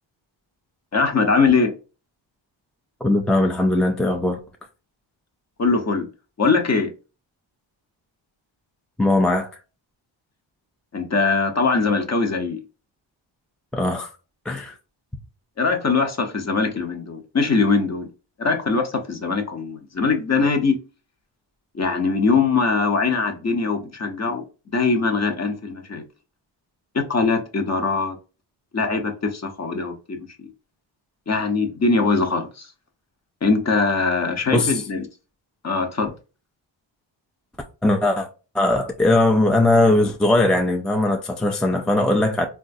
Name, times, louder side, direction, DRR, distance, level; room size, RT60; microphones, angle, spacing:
voice 1, 0.9-1.7 5.6-6.1 6.4-6.9 10.9-12.6 15.6-18.1 18.4-20.8 21.7-24.4 24.7-26.0 26.9-28.2 28.7-30.5 31.3-32.7 33.4-35.0 35.6-36.1, left 4 dB, 35° left, 0.8 m, -21 dB
voice 2, 3.0-4.4 9.0-9.5 13.7-14.1 14.5-14.8 34.5-34.8 37.8-38.3 38.5-42.5, left 2 dB, ahead, 0.3 m, -19 dB
3.7 x 2.3 x 2.5 m
cardioid pair, 80°, 48 cm